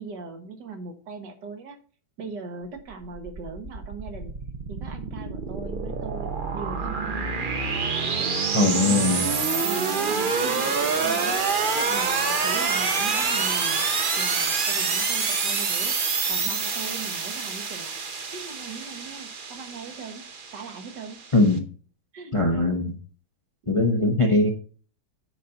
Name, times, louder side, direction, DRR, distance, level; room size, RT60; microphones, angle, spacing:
voice 1, 0.0-1.8 2.2-4.3 4.7-7.3 8.0-8.3 8.6-9.3 9.6-11.5 11.7-13.8 14.2-18.0 18.3-21.2 22.1-22.8 23.6-24.1, right 4 dB, 70° right, 6 dB, 1.9 m, -39 dB
sound 1, 2.8-21.5, right 5 dB, 40° right, 0.8 m, -27 dB
voice 2, 8.5-9.3 21.3-21.6 22.3-22.9 23.7-24.5, left 2 dB, 25° left, 3 dB, 0.7 m, -21 dB
9.3 x 4.1 x 5.7 m, 0.41 s
omnidirectional pair, 2.0 m